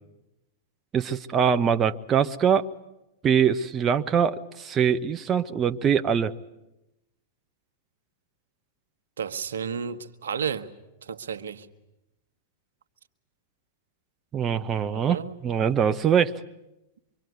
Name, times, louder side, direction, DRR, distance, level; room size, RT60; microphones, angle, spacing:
voice 1, 0.9-2.7 3.2-6.3 14.3-16.4, right 7 dB, 25° right, 0.9 m, -23 dB
voice 2, 9.2-10.7 11.0-11.7 14.9-15.4, right 7 dB, 80° right, 1.4 m, -32 dB
25.0 x 24.5 x 9.5 m
hypercardioid pair, 110°, 0 cm